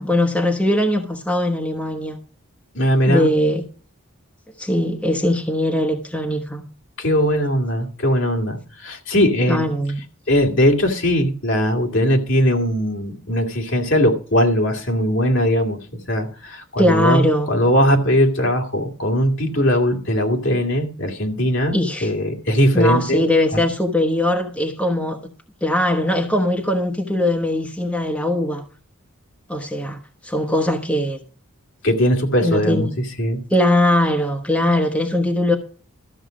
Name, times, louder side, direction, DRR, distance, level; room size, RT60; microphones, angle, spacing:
voice 1, 0.0-2.2 3.1-3.6 4.6-6.6 9.5-10.0 16.8-17.5 21.7-22.1 22.7-25.2 25.6-28.6 29.5-31.2 32.4-33.0 33.5-35.6, left 1 dB, 5° left, 1.0 m, -20 dB
voice 2, 2.7-3.3 7.0-9.6 10.3-15.8 16.1-23.2 23.5-23.6 31.8-32.9 33.2-33.4, equal, 60° left, 2.2 m, -19 dB
13.0 x 7.0 x 5.0 m
head